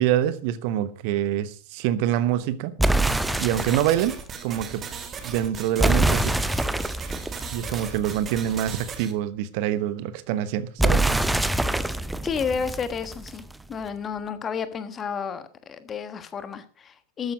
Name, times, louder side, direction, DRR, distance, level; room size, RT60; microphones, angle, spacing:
voice 1, 0.0-2.8 3.4-4.8 5.2-6.3 7.5-11.1, right 11 dB, 45° right, 1.0 m, -25 dB
sound 1, 2.8-4.0 5.8-8.5 10.8-13.5, right 1 dB, 5° right, 0.7 m, -25 dB
sound 2, 2.9-9.1, right 6 dB, 25° right, 1.9 m, -37 dB
voice 2, 12.2-13.4 13.7-17.3, left 6 dB, 20° left, 1.3 m, -31 dB
13.0 x 9.7 x 5.1 m
figure-of-eight pair, 90°, 0 cm